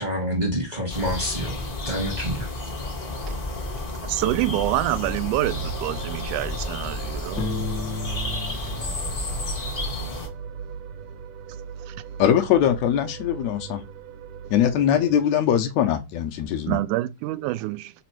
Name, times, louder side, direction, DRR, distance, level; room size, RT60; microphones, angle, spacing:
voice 1, 0.0-1.6 1.8-2.5, equal, 35° right, 0.7 m, -27 dB
sound 1, 0.9-10.3, left 2 dB, 45° left, 0.7 m, -31 dB
voice 2, 4.0-7.5 11.9-12.0 15.0-15.1 16.7-17.9, right 16 dB, 90° right, 2.0 m, -26 dB
sound 2, 5.3-15.2, right 8 dB, 70° right, 1.7 m, -37 dB
Piano, 7.4-10.1, left 4 dB, 60° left, 1.0 m, -34 dB
voice 3, 12.2-13.8 14.5-16.8, left 10 dB, 75° left, 1.8 m, -21 dB
5.0 x 4.1 x 4.5 m
omnidirectional pair, 3.4 m